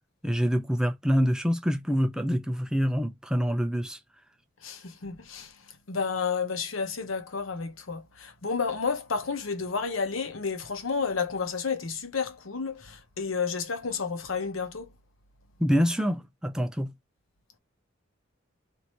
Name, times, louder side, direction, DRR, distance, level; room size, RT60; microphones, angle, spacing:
voice 1, 0.2-4.0 15.6-16.9, equal, 5° right, 0.5 m, -26 dB
voice 2, 4.6-14.9, left 5 dB, 85° left, 0.9 m, -31 dB
3.0 x 2.6 x 4.2 m
head